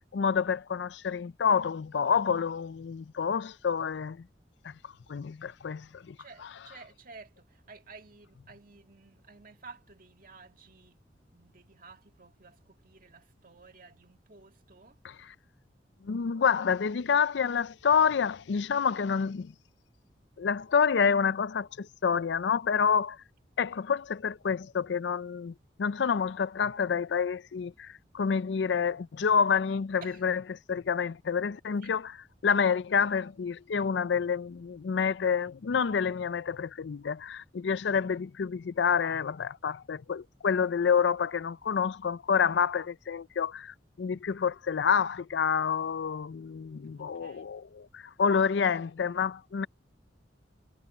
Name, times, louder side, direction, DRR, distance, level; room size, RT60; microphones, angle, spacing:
voice 1, 0.0-4.2 4.6-4.7 5.1-6.2 6.4-6.5 15.0-15.3 16.0-19.5 20.4-23.2 23.6-25.5 25.8-32.2 32.4-49.7, left 6 dB, 70° left, 0.4 m, -28 dB
voice 2, 6.2-11.0 11.3-15.0 30.0-30.2 31.8-31.9 47.0-47.5, right 4 dB, 50° right, 2.2 m, -52 dB
head